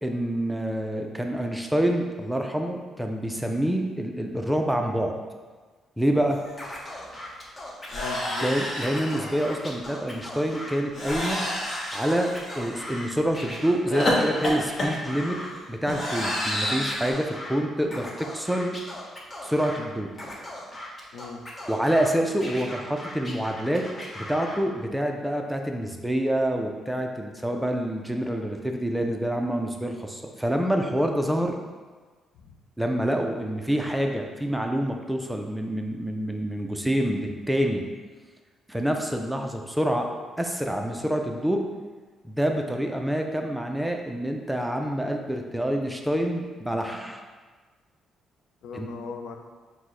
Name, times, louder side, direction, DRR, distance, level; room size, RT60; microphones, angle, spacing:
voice 1, 0.0-5.1 6.0-6.4 8.4-11.4 11.9-15.4 15.7-18.8 19.4-20.1 21.7-23.9 24.1-31.6 32.8-37.8 38.7-40.1 40.4-41.6 42.2-47.2 48.7-48.9, equal, 5° right, 3 dB, 0.4 m, -27 dB
sound 1, 6.5-6.6 6.8-7.0 7.9-9.5 10.9-13.1 13.9-17.1, left 1 dB, 50° left, 1.0 m, -30 dB
Scratching (performance technique), 6.6-8.5 8.8-10.8 11.0-13.0 13.3-15.5 15.9-17.6 17.9-19.8 20.1-22.1 22.4-24.6, left 1 dB, 25° left, 0.8 m, -39 dB
voice 2, 7.9-8.5 21.1-21.4 32.3-32.6 48.6-49.4, left 5 dB, 80° left, 3 dB, 0.4 m, -39 dB
4.5 x 2.1 x 3.8 m, 1.4 s
cardioid pair, 90°, 0 cm